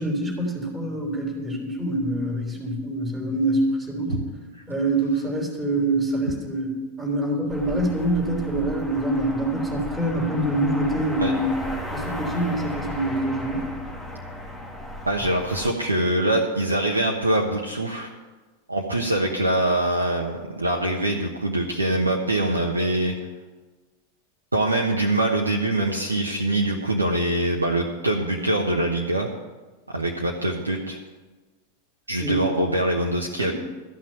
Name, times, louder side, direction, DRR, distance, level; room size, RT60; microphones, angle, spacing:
voice 1, 0.0-4.2 4.7-6.7 7.0-11.5 11.9-13.7 32.2-32.4 33.4-33.5, right 1 dB, 10° right, -1 dB, 3.4 m, -25 dB
sound 1, 7.5-15.7, left 1 dB, 15° left, 2.1 m, -35 dB
voice 2, 15.1-18.1 18.7-23.1 24.5-29.3 29.9-31.0 32.1-33.5, right 1 dB, 80° right, 0 dB, 1.1 m, -23 dB
13.5 x 5.9 x 9.2 m, 1.2 s
figure-of-eight pair, 90°, 0 cm